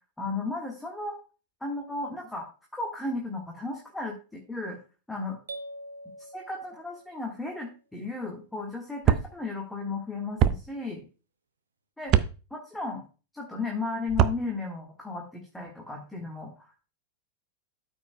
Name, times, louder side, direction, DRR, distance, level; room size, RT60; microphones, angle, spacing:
voice 1, 0.2-1.2 1.6-2.5 2.7-4.8 5.1-5.4 6.2-11.0 12.0-12.2 12.5-13.0 13.3-16.9, left 3 dB, 5° left, 0 dB, 1.5 m, -35 dB
sound 1, 5.5-7.4, right 1 dB, 70° right, 0.8 m, -43 dB
sound 2, 9.0-9.3 10.4-10.6 12.1-12.3 14.1-14.4, right 10 dB, 35° right, 0.5 m, -21 dB
13.0 x 5.3 x 2.2 m, 0.33 s
figure-of-eight pair, 90°, 0 cm